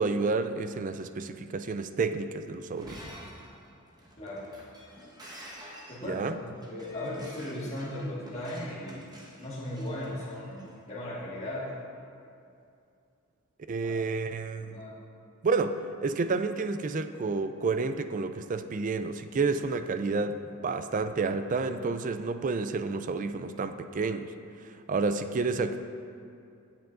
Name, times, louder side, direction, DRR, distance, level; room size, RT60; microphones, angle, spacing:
voice 1, 0.0-3.0 6.0-6.4 13.7-14.8 15.4-24.3 24.6-25.8, right 4 dB, 35° right, 9 dB, 0.4 m, -30 dB
Shatter, 2.7-10.7, equal, 20° right, 1.3 m, -48 dB
voice 2, 5.9-9.1 9.4-11.7 13.8-14.0 14.6-15.0, left 1 dB, 30° left, -7 dB, 1.7 m, -37 dB
17.0 x 7.1 x 2.6 m, 2.5 s
head